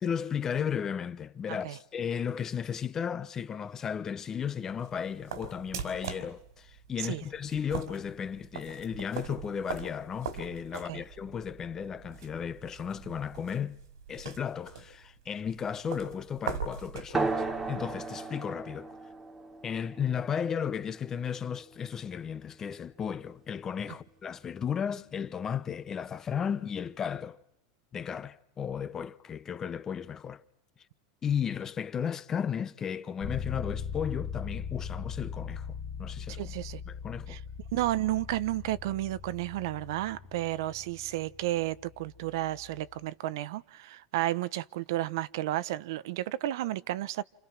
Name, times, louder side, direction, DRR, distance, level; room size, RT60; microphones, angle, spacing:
voice 1, 0.0-13.8 14.1-19.0 19.6-27.4 27.9-30.4 31.2-35.7 36.0-36.5 36.9-37.4, left 7 dB, 25° left, 0.9 m, -34 dB
sound 1, 4.3-18.0, right 6 dB, 90° right, 4.1 m, -42 dB
sound 2, 17.1-22.2, right 3 dB, 15° right, 2.0 m, -36 dB
sound 3, 33.2-42.9, left 6 dB, 40° left, 2.8 m, -40 dB
voice 2, 36.4-36.8 37.3-37.4 37.7-47.2, right 15 dB, 70° right, 0.9 m, -32 dB
29.0 x 28.5 x 6.0 m
supercardioid pair, 140°, 2 cm